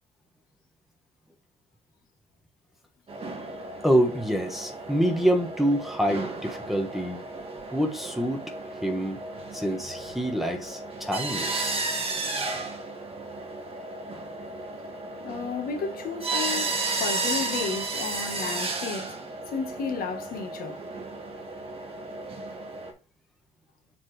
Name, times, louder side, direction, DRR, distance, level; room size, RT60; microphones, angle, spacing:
sound 1, 3.1-22.9, right 3 dB, 35° right, 1.6 m, -34 dB
voice 1, 3.8-7.2 7.7-8.4 8.8-9.2 9.5-11.8, equal, ahead, 1.2 m, -26 dB
voice 2, 15.2-19.2 19.5-20.8, left 5 dB, 60° left, 1.5 m, -33 dB
7.3 x 4.2 x 3.3 m
cardioid pair, 110°, 17 cm